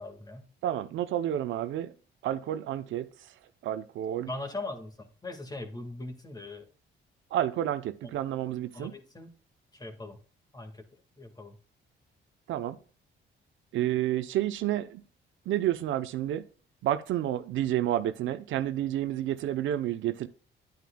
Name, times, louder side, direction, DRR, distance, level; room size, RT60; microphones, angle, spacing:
voice 1, 0.0-0.5 4.3-6.7 8.7-9.3 9.7-10.2 10.5-10.9 11.2-11.6, left 2 dB, 20° left, 1.9 m, -40 dB
voice 2, 0.6-1.9 2.2-3.1 3.6-4.3 7.3-8.9 12.5-12.8 13.7-15.0 15.5-16.4 16.8-20.3, right 12 dB, 80° right, 0.7 m, -30 dB
10.5 x 9.3 x 2.3 m
cardioid pair, 90°, 20 cm